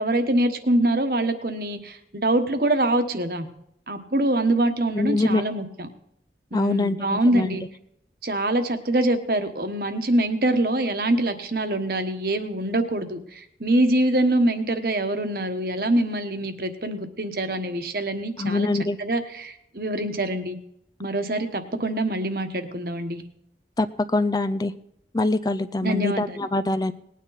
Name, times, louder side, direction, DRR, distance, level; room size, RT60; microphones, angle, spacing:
voice 1, 0.0-3.5 3.9-5.7 6.5-7.6 8.2-18.7 19.0-20.6 21.0-23.2 25.8-26.4, right 1 dB, 55° right, 7 dB, 1.3 m, -24 dB
voice 2, 4.9-5.4 6.5-7.5 18.4-19.0 23.8-23.9 24.1-24.7 25.1-26.9, left 2 dB, 20° left, 12 dB, 0.4 m, -24 dB
19.5 x 9.4 x 4.1 m, 0.75 s
head